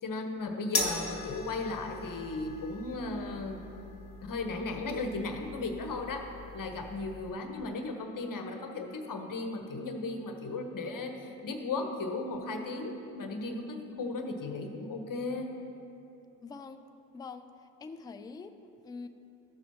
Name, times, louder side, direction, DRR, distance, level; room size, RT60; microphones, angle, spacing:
voice 1, 0.0-3.7 4.2-6.2 6.5-15.5, left 3 dB, 45° left, 4 dB, 1.1 m, -36 dB
sound 1, 0.7-7.3, left 2 dB, 30° left, 1.4 m, -39 dB
voice 2, 16.4-16.8 17.1-19.1, left 4 dB, 10° left, 9 dB, 0.3 m, -45 dB
13.0 x 7.2 x 2.9 m, 2.8 s
hypercardioid pair, 45°, 47 cm